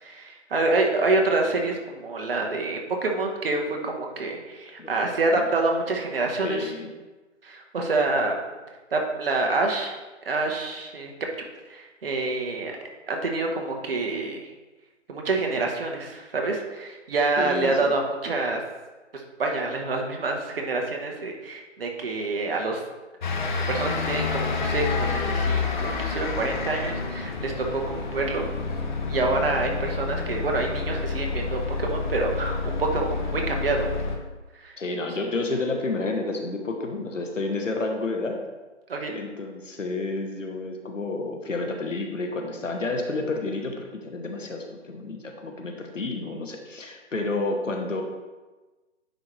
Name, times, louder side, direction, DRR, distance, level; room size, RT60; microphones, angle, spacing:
voice 1, 0.0-6.7 7.4-8.4 8.9-10.0 10.3-11.1 11.7-12.7 13.1-14.4 15.1-18.6 19.4-22.8 23.2-23.3 23.7-28.5 29.1-33.9 34.6-34.7 38.9-39.2, right 3 dB, 50° right, 1 dB, 1.2 m, -27 dB
voice 2, 6.4-6.9 17.4-17.9 34.8-38.4 39.1-48.0, left 3 dB, 90° left, 3 dB, 1.1 m, -30 dB
sound 1, 23.2-34.2, left 4 dB, 40° left, 0.8 m, -28 dB
9.5 x 4.4 x 3.2 m, 1.2 s
figure-of-eight pair, 150°, 37 cm